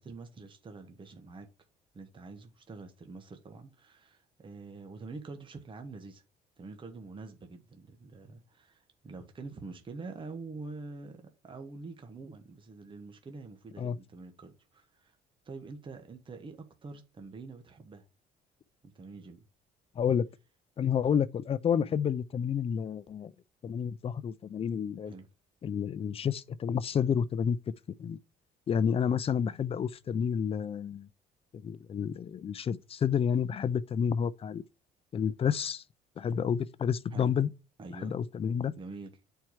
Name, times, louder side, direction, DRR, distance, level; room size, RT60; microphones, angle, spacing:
voice 1, 0.0-1.5 1.9-6.2 6.6-15.2 15.4-18.0 18.8-19.4 25.1-25.3 37.1-37.4 37.8-38.1 38.8-39.1, right 3 dB, 30° right, 1.3 m, -46 dB
voice 2, 20.0-20.3 20.8-23.3 23.6-25.1 25.6-27.6 28.0-28.2 28.7-31.1 31.5-34.6 35.1-35.8 36.2-37.5 38.0-38.7, left 7 dB, 35° left, 0.5 m, -30 dB
8.6 x 4.6 x 4.8 m
cardioid pair, 110°, 17 cm